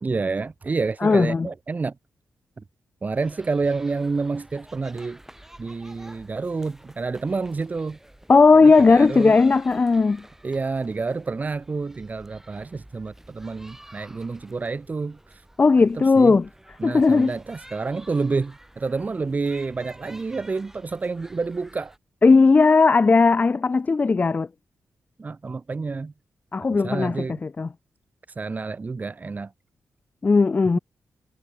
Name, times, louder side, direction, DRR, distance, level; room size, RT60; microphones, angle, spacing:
voice 1, 0.0-1.9 3.0-5.2 5.6-8.0 8.6-9.4 10.4-15.2 15.8-15.9 16.2-16.3 16.8-21.9 25.2-26.1 26.7-27.4 28.4-29.5, right 4 dB, 30° right, 2.0 m, -28 dB
voice 2, 1.0-1.5 8.3-10.2 15.6-16.5 16.8-17.3 22.2-24.5 26.5-27.7 30.2-30.8, left 4 dB, 30° left, 1.1 m, -17 dB
sound 1, 3.1-22.0, right 1 dB, 5° right, 6.6 m, -50 dB
wide cardioid pair, 120°, 5 cm